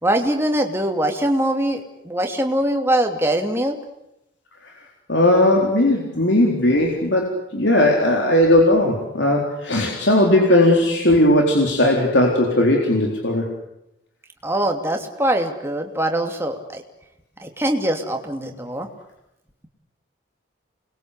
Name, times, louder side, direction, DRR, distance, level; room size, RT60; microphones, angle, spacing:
voice 1, 0.0-3.8 14.4-16.8 17.4-18.9, right 1 dB, 10° right, 3 dB, 2.8 m, -22 dB
voice 2, 5.1-13.5, left 1 dB, 60° left, 0 dB, 4.0 m, -17 dB
29.0 x 22.0 x 8.3 m, 0.85 s
head